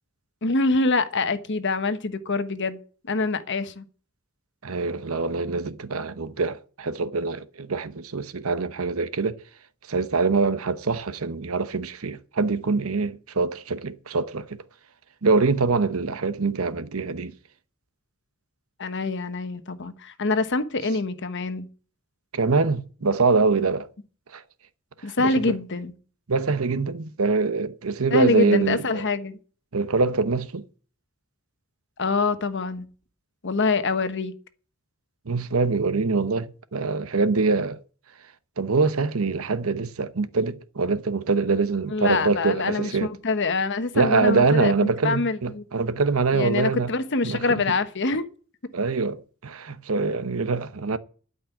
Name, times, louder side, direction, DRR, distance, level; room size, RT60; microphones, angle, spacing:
voice 1, 0.4-2.8 3.1-3.8 18.8-21.7 25.0-25.9 28.1-29.4 32.0-32.9 33.4-34.3 41.9-45.6 46.3-48.3, left 3 dB, 55° left, 1.1 m, -25 dB
voice 2, 4.6-9.4 9.9-14.6 15.2-17.3 22.3-23.9 24.3-24.4 25.2-25.6 26.3-29.0 29.7-30.6 35.3-37.8 38.6-43.1 43.9-46.9 47.2-47.6 48.7-51.0, right 4 dB, 85° right, 0.9 m, -24 dB
12.5 x 5.5 x 8.4 m
head